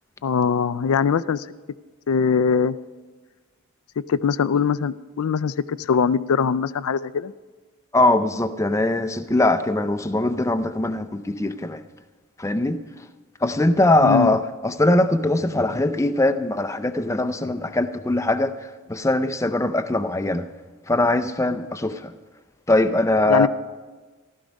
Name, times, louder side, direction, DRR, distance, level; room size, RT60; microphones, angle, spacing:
voice 1, 0.2-1.5 2.1-2.8 4.0-7.3 14.0-14.4 23.3-23.5, left 6 dB, 75° left, 0.4 m, -22 dB
voice 2, 7.9-11.8 12.4-12.8 13.4-20.5 20.9-22.1 22.7-23.5, left 2 dB, 15° left, 0.5 m, -21 dB
15.0 x 12.5 x 5.2 m
head